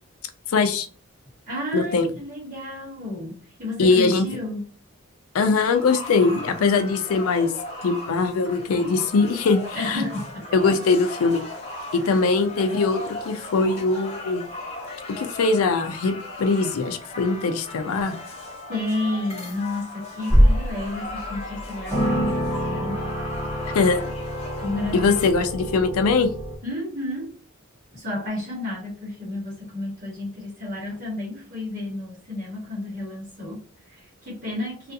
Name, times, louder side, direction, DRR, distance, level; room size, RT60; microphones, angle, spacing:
voice 1, 0.5-0.9 1.7-2.1 3.8-4.3 5.3-7.5 7.8-10.0 10.5-11.4 11.9-14.4 15.1-18.2 23.7-24.1 24.9-26.3, left 4 dB, 70° left, 7 dB, 0.4 m, -21 dB
voice 2, 1.5-4.7 9.7-10.5 12.0-12.3 18.7-23.1 24.6-25.2 26.6-27.3 27.9-34.9, left 1 dB, 40° right, -6 dB, 1.1 m, -31 dB
sound 1, 5.6-25.3, left 2 dB, 30° left, 0.7 m, -37 dB
sound 2, 20.3-20.8 21.3-21.4 21.9-26.6, equal, ahead, 1.0 m, -24 dB
2.4 x 2.3 x 2.6 m, 0.39 s
head